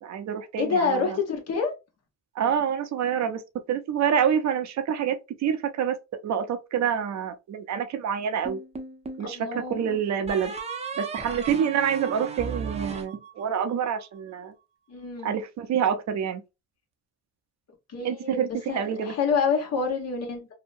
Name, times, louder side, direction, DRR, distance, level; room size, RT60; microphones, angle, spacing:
voice 1, 0.0-1.2 2.3-3.4 3.7-6.0 6.2-8.6 9.2-10.5 11.0-14.5 15.2-16.4 18.0-19.1, right 8 dB, 65° right, 0.6 m, -27 dB
voice 2, 0.6-1.7 9.2-10.0 14.9-15.4 17.9-20.5, left 5 dB, 55° left, 1.1 m, -27 dB
sound 1, 8.4-9.3 10.3-13.7, right 5 dB, 20° right, 0.6 m, -35 dB
2.8 x 2.1 x 2.5 m
cardioid pair, 90°, 30 cm